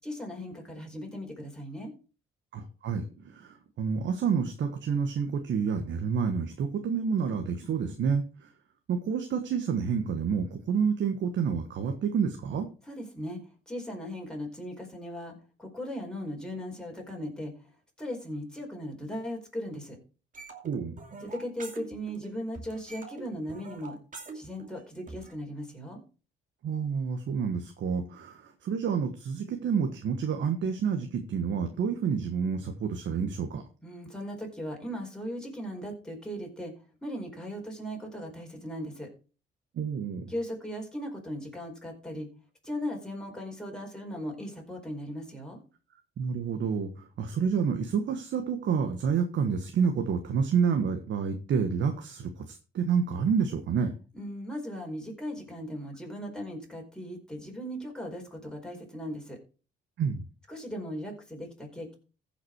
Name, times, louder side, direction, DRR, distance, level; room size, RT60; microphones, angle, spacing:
voice 1, 0.0-1.9 12.9-13.4 13.7-17.5 18.0-20.0 21.2-24.0 24.3-26.0 33.8-36.7 37.0-39.1 40.3-42.3 42.6-45.6 54.1-59.4 60.5-61.9, equal, 5° left, 0 dB, 4.6 m, -38 dB
voice 2, 2.5-8.5 8.9-12.7 20.6-20.9 26.6-33.6 39.7-40.3 46.2-54.0 60.0-60.2, right 6 dB, 65° right, 5 dB, 1.5 m, -29 dB
sound 1, 20.3-22.3 22.5-25.3, right 4 dB, 40° right, 2.5 m, -44 dB
15.0 x 6.0 x 4.7 m, 0.35 s
cardioid pair, 90°, 20 cm